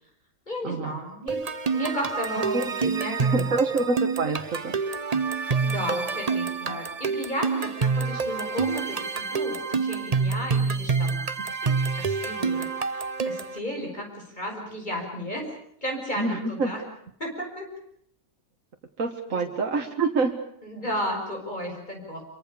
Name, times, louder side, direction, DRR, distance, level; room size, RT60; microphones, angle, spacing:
voice 1, 0.5-1.4 1.7-3.8 5.6-11.2 11.5-15.5 15.8-16.8 17.2-17.7 19.3-19.4 20.6-22.2, equal, 35° left, 1 dB, 5.8 m, -34 dB
sound 1, 1.3-13.6, right 5 dB, 30° right, 1.0 m, -27 dB
voice 2, 3.3-4.7 16.2-16.7 19.0-20.3, right 3 dB, 70° right, 2 dB, 2.1 m, -26 dB
26.0 x 23.5 x 6.9 m, 0.69 s
omnidirectional pair, 1.4 m